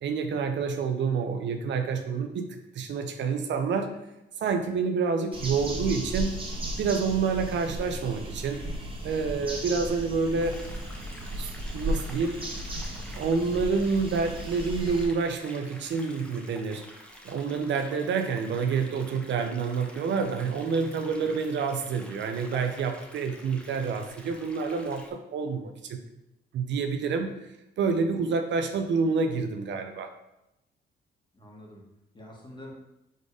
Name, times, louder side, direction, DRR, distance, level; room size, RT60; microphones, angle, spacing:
voice 1, 0.0-3.9 4.4-6.4 6.8-8.6 9.0-10.6 11.4-12.4 13.1-16.8 17.2-26.0 26.5-27.3 27.8-30.1, right 5 dB, 65° right, 6 dB, 0.7 m, -28 dB
sound 1, 5.3-15.1, right 1 dB, 25° right, 1.6 m, -35 dB
voice 2, 9.2-10.0 21.0-21.3 31.3-31.8 32.1-32.8, equal, 25° left, -2 dB, 1.9 m, -48 dB
sound 2, 10.4-25.1, equal, 5° left, 1.1 m, -49 dB
5.2 x 4.1 x 4.9 m, 0.90 s
cardioid pair, 90°, 20 cm